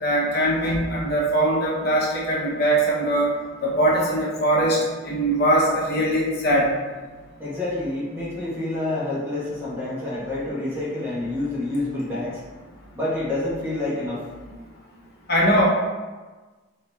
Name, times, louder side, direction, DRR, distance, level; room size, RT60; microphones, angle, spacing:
voice 1, 0.0-3.3 3.6-4.8 5.0-6.7 15.3-15.7, right 1 dB, 50° left, -4 dB, 0.7 m, -21 dB
voice 2, 7.4-12.3 12.9-14.2, left 2 dB, 10° right, -8 dB, 1.1 m, -28 dB
7.4 x 2.8 x 2.3 m, 1.3 s
head